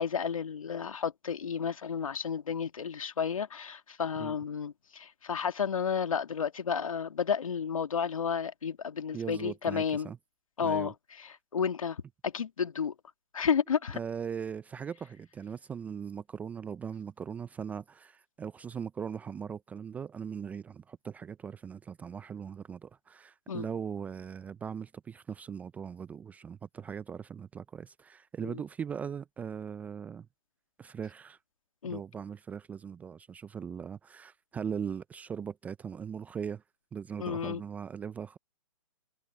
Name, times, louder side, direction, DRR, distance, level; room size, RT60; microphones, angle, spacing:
voice 1, 0.0-10.1 10.6-12.9 13.3-14.0 23.5-23.7 28.4-28.6 31.8-32.0 37.2-37.6, left 7 dB, 80° left, 2.3 m, -32 dB
voice 2, 9.1-10.2 10.6-10.9 13.9-30.3 30.8-31.4 31.8-36.6 36.9-38.4, right 7 dB, 10° right, 0.4 m, -39 dB
hypercardioid pair, 140°, 17 cm